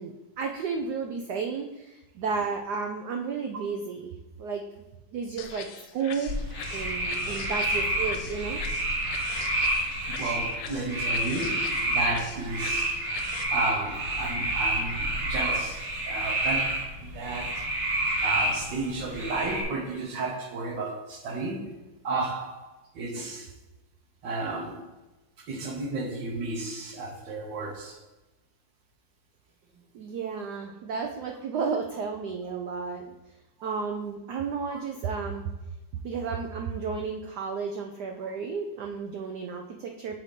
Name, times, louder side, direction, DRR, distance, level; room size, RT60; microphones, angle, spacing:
voice 1, 0.0-4.1 4.4-4.6 5.1-5.7 5.9-6.3 6.7-8.6 29.9-33.1 33.6-35.4 36.0-40.2, right 5 dB, 85° right, 3 dB, 0.9 m, -32 dB
sound 1, 5.4-13.4, left 7 dB, 80° left, 1.5 m, -42 dB
sound 2, 6.3-19.6, right 1 dB, 40° right, 1.2 m, -29 dB
voice 2, 10.1-12.9 13.5-17.6 18.2-23.5 24.2-24.9 25.5-28.0 33.6-33.7 34.7-34.8, right 3 dB, 65° right, 1 dB, 1.4 m, -33 dB
7.1 x 2.7 x 5.0 m, 1.0 s
omnidirectional pair, 2.4 m